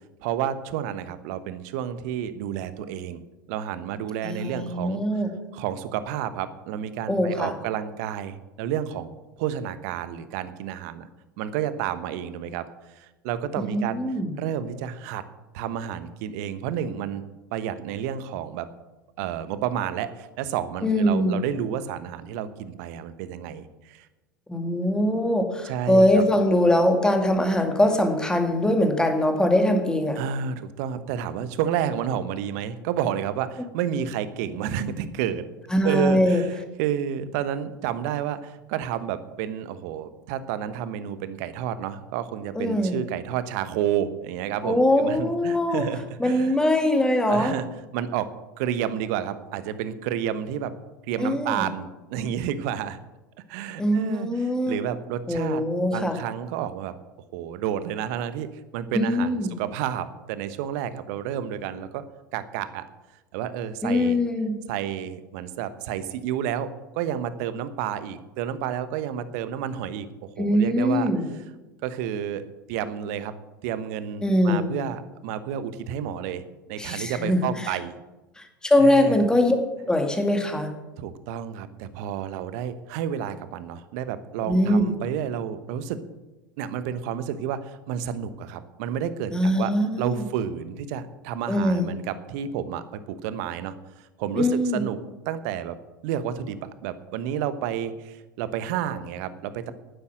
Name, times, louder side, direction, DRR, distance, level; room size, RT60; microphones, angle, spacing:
voice 1, 0.2-3.2 3.5-5.0 5.5-9.1 9.4-11.1 11.4-12.7 13.0-14.0 14.4-15.2 15.5-17.2 17.5-18.7 19.2-24.1 25.6-26.2 30.1-35.4 35.8-46.6 47.2-47.6 47.9-48.3 48.6-50.7 51.1-53.0 53.5-54.3 54.7-55.6 55.9-56.9 57.3-58.5 58.7-62.0 62.3-62.8 63.3-64.2 64.7-71.1 71.8-73.3 73.6-76.4 76.7-78.0 78.8-79.2 81.0-86.0 86.6-89.7 90.0-95.0 95.3-95.8 96.0-99.7, right 9 dB, 55° right, 13 dB, 1.1 m, -30 dB
voice 2, 4.2-5.3 7.1-7.5 13.6-14.3 20.8-21.4 24.5-30.2 35.7-36.4 42.6-43.0 44.6-45.8 46.2-47.5 51.2-51.7 53.8-54.8 55.3-56.2 58.9-59.5 63.8-64.6 70.4-71.3 74.2-74.8 76.8-77.8 78.4-79.6 79.9-80.7 84.4-84.9 89.3-90.2 91.5-91.8 94.3-94.8, left 1 dB, 5° left, 4 dB, 2.2 m, -22 dB
11.5 x 9.9 x 6.2 m, 1.1 s
figure-of-eight pair, 80°, 11 cm